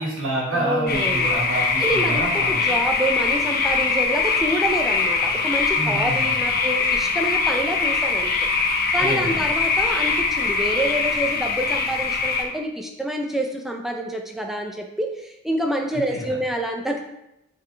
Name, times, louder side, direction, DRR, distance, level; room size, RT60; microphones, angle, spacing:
voice 1, 0.0-2.6 5.7-6.3 9.0-9.4 15.9-16.4, right 2 dB, 50° right, -7 dB, 1.5 m, -28 dB
voice 2, 0.5-1.3 1.8-2.2 2.5-8.3 8.9-17.0, right 1 dB, ahead, 2 dB, 0.4 m, -27 dB
sound 1, 0.9-12.4, left 4 dB, 45° left, 0.9 m, -22 dB
8.8 x 3.9 x 3.3 m, 0.89 s
head